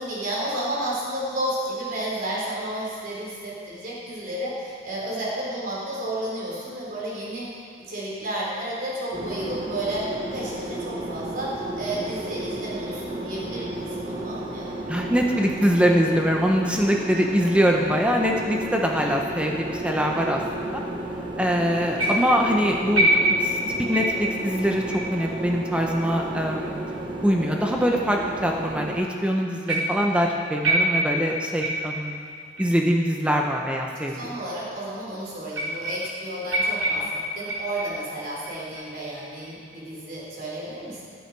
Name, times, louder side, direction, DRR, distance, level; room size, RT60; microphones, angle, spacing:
voice 1, 0.0-7.5 7.9-14.7 34.1-41.0, right 1 dB, 45° right, -5 dB, 3.8 m, -32 dB
sound 1, 9.1-29.0, right 1 dB, 25° right, 1.1 m, -33 dB
voice 2, 14.9-20.8 21.4-24.8 25.1-26.8 27.2-32.2 32.6-34.2 36.7-36.8, equal, 5° right, 0 dB, 0.8 m, -23 dB
sound 2, 22.0-22.5 22.9-23.6 23.9-24.3 24.9-25.1 25.9-26.0 26.8-26.9 27.8-27.9 29.7-30.1 30.6-31.2 31.6-32.0 32.6-32.8 33.5-33.6 34.5-34.6 35.5-36.2 36.5-38.1 38.4-38.9 39.4-39.8, right 1 dB, 85° right, 3.0 m, -25 dB
18.5 x 8.5 x 4.7 m, 2.2 s
head